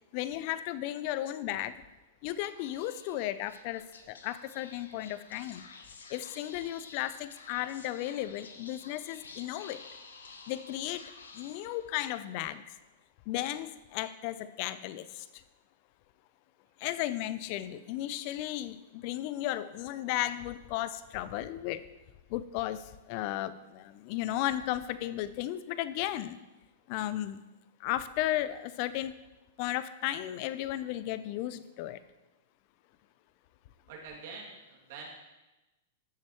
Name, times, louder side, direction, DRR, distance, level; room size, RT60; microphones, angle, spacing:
voice 1, 0.1-1.8 2.2-5.6 6.1-9.8 10.5-12.8 13.3-15.4 16.8-21.8 22.3-26.4 26.9-27.4 27.8-29.2 29.6-32.0, left 14 dB, 50° left, 15 dB, 0.5 m, -35 dB
Speech / Whispering, 2.3-12.1, left 4 dB, 90° left, 1.0 m, -52 dB
voice 2, 33.9-35.1, right 4 dB, 60° right, -2 dB, 2.5 m, -45 dB
13.0 x 7.4 x 3.1 m, 1.1 s
hypercardioid pair, 120°, 0 cm